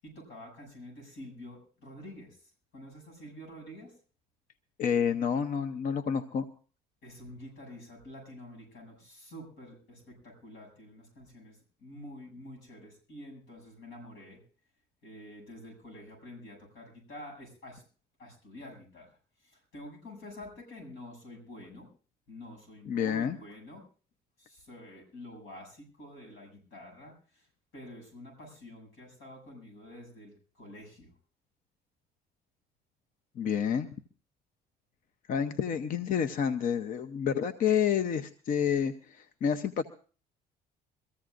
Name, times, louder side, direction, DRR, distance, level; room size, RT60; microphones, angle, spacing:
voice 1, 0.0-3.9 7.0-14.4 15.0-17.8 18.2-19.1 19.4-21.9 22.3-23.8 24.4-27.4 27.7-31.1, left 1 dB, 80° left, 1 dB, 7.4 m, -48 dB
voice 2, 4.8-6.5 22.9-23.4 33.4-33.9 35.3-39.8, left 7 dB, 55° left, 10 dB, 0.7 m, -29 dB
24.0 x 14.5 x 2.5 m, 0.39 s
cardioid pair, 110°, 17 cm